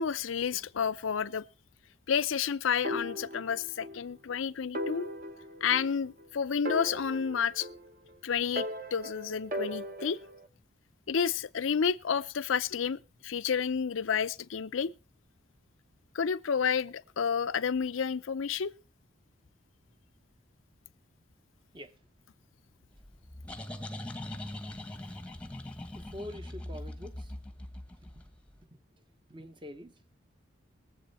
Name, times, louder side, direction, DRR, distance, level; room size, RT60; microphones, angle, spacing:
voice 1, 0.0-1.4 2.1-5.1 5.6-7.7 8.2-10.2 11.1-14.9 16.1-18.7, left 6 dB, 90° left, 0.5 m, -30 dB
sound 1, 2.8-4.0 4.3-4.4 4.7-6.3 6.7-8.1 8.6-10.4, equal, 45° right, 1.3 m, -38 dB
sound 2, 23.0-28.5, left 1 dB, 5° left, 1.0 m, -42 dB
voice 2, 26.1-27.1 29.3-29.9, left 1 dB, 25° right, 0.9 m, -43 dB
22.0 x 7.8 x 4.2 m
head